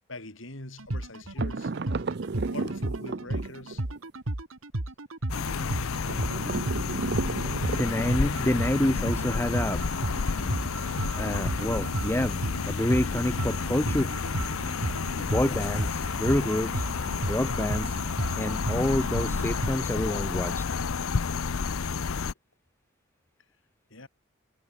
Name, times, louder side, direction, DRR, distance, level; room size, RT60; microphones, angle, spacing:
voice 1, 0.1-1.7 2.5-3.8 14.5-14.6 23.9-24.1, left 2 dB, 65° left, 5.1 m, -43 dB
sound 1, 0.8-19.7, right 1 dB, 75° right, 2.1 m, -34 dB
sound 2, 1.4-4.0 6.0-8.3, right 3 dB, 50° right, 0.6 m, -33 dB
sound 3, 5.3-22.3, left 5 dB, 80° left, 0.7 m, -30 dB
voice 2, 7.8-9.8 11.2-14.1 15.3-18.0 18.4-20.7, left 1 dB, 10° left, 0.8 m, -28 dB
head